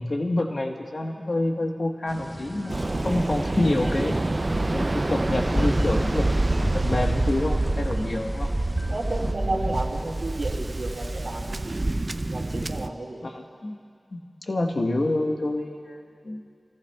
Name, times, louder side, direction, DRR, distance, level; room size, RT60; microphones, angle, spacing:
voice 1, 0.0-4.2 4.7-8.5 9.5-9.8 13.2-13.8 14.1-14.2 14.5-16.5, left 2 dB, 60° left, 2 dB, 1.3 m, -28 dB
sound 1, 2.1-9.3, equal, 15° right, 0.8 m, -33 dB
Waves surf, 2.7-12.9, right 2 dB, 40° right, 0.4 m, -27 dB
voice 2, 8.9-11.8 12.3-13.3, right 2 dB, 75° right, -2 dB, 2.1 m, -32 dB
29.5 x 18.0 x 2.3 m, 2.2 s
wide cardioid pair, 60°, 0 cm